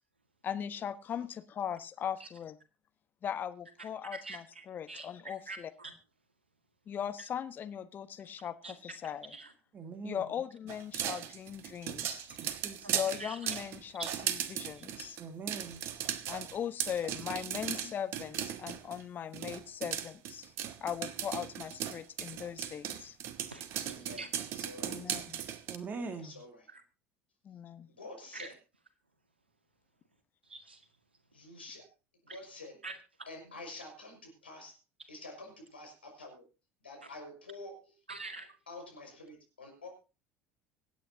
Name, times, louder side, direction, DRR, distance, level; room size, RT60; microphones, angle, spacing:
voice 1, 0.4-2.6 3.2-5.7 6.9-9.3 10.0-12.3 12.9-15.2 16.3-20.5 20.8-23.2 24.8-25.4 27.4-27.9, left 9 dB, 35° left, 1.2 m, -39 dB
voice 2, 5.5-5.9 8.6-8.7 9.3-9.5 12.0-12.4 12.8-12.9 13.2-13.4 14.0-14.1 14.8-14.9 23.5-24.3 26.7-26.8 28.3-28.5 30.4-30.8 32.3-32.4 32.8-32.9 38.1-38.6, right 3 dB, 80° right, 1.8 m, -44 dB
voice 3, 9.7-10.2 12.4-13.0 15.2-15.8 25.7-26.3, right 4 dB, 30° right, 2.1 m, -42 dB
sound 1, 10.7-19.0 19.3-25.8, right 10 dB, 50° right, 1.3 m, -37 dB
voice 4, 23.9-25.2 26.2-26.7 27.9-28.6 31.3-31.9 32.2-32.8 33.3-34.8 35.1-36.5 36.8-38.0 38.7-39.9, left 2 dB, 80° left, 5.4 m, -48 dB
25.0 x 9.2 x 2.8 m
figure-of-eight pair, 65°, 6 cm